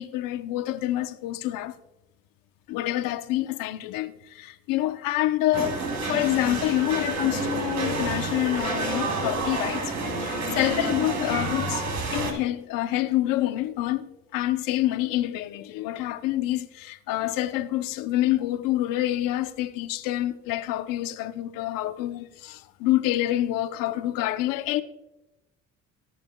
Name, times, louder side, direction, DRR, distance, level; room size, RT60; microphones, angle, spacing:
voice 1, 0.0-1.7 2.7-9.9 10.2-11.9 12.1-24.8, left 14 dB, 85° left, 0.9 m, -27 dB
sound 1, 5.5-12.3, right 3 dB, 55° right, 3.7 m, -29 dB
19.0 x 9.4 x 2.4 m
cardioid pair, 90°, 33 cm